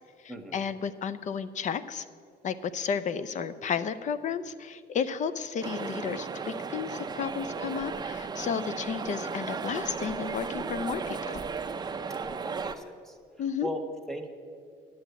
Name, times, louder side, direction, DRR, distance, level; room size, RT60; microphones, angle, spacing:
voice 1, 0.2-2.1 2.4-11.4 13.4-13.7, left 7 dB, 45° left, 14 dB, 0.6 m, -32 dB
sound 1, 5.6-12.7, right 5 dB, 25° right, 0.6 m, -35 dB
voice 2, 12.2-13.2 13.6-14.3, equal, 5° left, 4 dB, 1.3 m, -38 dB
10.0 x 7.8 x 8.2 m, 2.2 s
cardioid pair, 110°, 17 cm